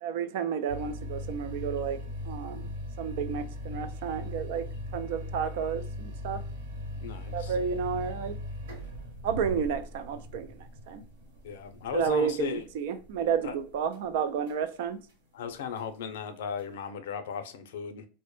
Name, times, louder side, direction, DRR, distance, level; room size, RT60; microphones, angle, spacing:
voice 1, 0.0-2.7 3.0-4.7 4.9-6.4 7.3-8.4 9.2-10.5 10.9-11.0 11.9-15.0, right 7 dB, 55° right, 0.3 m, -31 dB
sound 1, 0.7-14.1 14.5-14.6 15.1-15.2 15.8-15.9 16.6-16.7, left 1 dB, 80° right, 1.1 m, -39 dB
voice 2, 7.0-7.6 11.4-12.6 13.4-13.6 15.3-18.1, left 7 dB, 75° left, 0.5 m, -36 dB
2.1 x 2.0 x 2.9 m
supercardioid pair, 175°, 0 cm